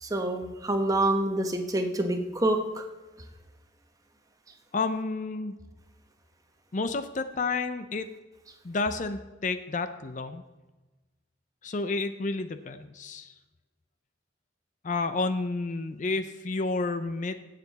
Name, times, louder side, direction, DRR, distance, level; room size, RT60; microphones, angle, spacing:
voice 1, 0.0-2.8, right 1 dB, 20° right, 5 dB, 1.0 m, -27 dB
voice 2, 4.7-5.6 6.7-8.1 8.6-10.4 11.6-13.3 14.8-17.4, left 3 dB, 40° left, 10 dB, 0.5 m, -30 dB
16.5 x 6.8 x 4.1 m, 1.2 s
head